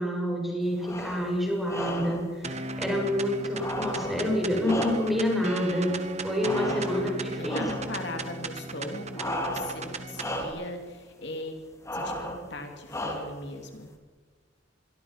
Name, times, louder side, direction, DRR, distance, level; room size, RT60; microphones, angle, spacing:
voice 1, 0.0-6.0 6.2-7.6, equal, ahead, -2 dB, 7.1 m, -28 dB
sound 1, 0.8-1.3 1.7-2.3 3.5-5.3 6.4-7.2 7.5-8.0 9.1-9.9 10.1-10.7 11.8-12.5 12.9-13.5, left 1 dB, 15° left, 2.8 m, -34 dB
sound 2, 2.4-10.4, right 2 dB, 35° right, 1.7 m, -36 dB
voice 2, 6.6-7.1 7.3-11.6 11.9-13.9, left 1 dB, 60° left, 4 dB, 2.6 m, -39 dB
26.5 x 22.5 x 5.9 m, 1.4 s
head